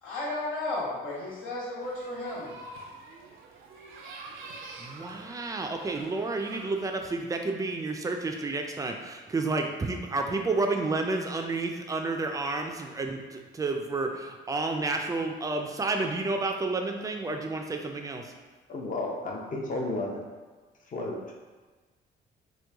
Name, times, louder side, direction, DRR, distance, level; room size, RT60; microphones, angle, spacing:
voice 1, 0.0-2.5, left 2 dB, 90° left, -11 dB, 1.4 m, -33 dB
sound 1, 1.8-7.1, right 3 dB, 85° right, 0.5 m, -47 dB
voice 2, 4.8-18.2, right 3 dB, 15° right, 3 dB, 0.3 m, -30 dB
voice 3, 18.7-20.2 20.9-21.2, left 2 dB, 40° left, 0 dB, 0.6 m, -32 dB
3.0 x 2.2 x 3.4 m, 1.4 s
cardioid pair, 90°, 20 cm